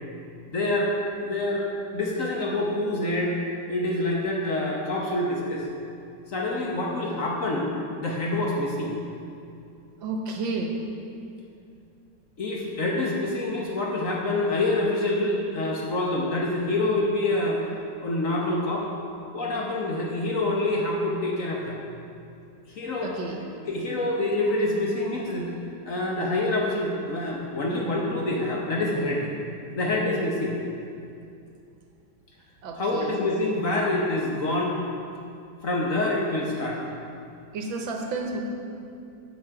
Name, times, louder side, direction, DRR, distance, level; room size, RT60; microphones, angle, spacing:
voice 1, 0.5-1.7 1.9-3.4 3.7-5.7 6.3-8.9 12.4-17.6 18.0-18.9 19.3-21.8 22.7-23.1 23.7-25.5 25.9-29.3 29.7-30.6 32.8-34.8 35.6-36.8, left 2 dB, 50° left, -2 dB, 1.2 m, -26 dB
voice 2, 10.0-10.8 23.0-23.4 32.6-33.2 37.5-38.4, right 3 dB, 85° right, 2 dB, 1.7 m, -31 dB
8.7 x 7.2 x 4.7 m, 2.5 s
omnidirectional pair, 2.1 m